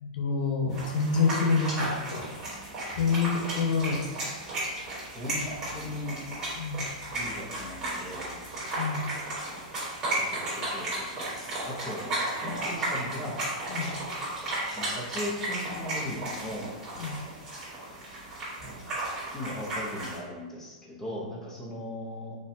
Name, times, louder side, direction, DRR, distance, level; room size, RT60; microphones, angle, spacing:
voice 1, 0.0-2.3 3.0-4.0 6.6-6.8 8.7-9.0 12.4-12.5 13.7-13.9 17.0-17.2, left 4 dB, 75° left, 2 dB, 0.6 m, -27 dB
sound 1, 0.7-20.2, right 1 dB, 15° right, 1.4 m, -34 dB
voice 2, 5.1-6.2 7.1-8.4 10.2-13.4 14.7-16.7 19.3-22.4, left 1 dB, 10° left, -5 dB, 0.7 m, -38 dB
4.2 x 2.3 x 2.6 m, 1.3 s
supercardioid pair, 160°, 4 cm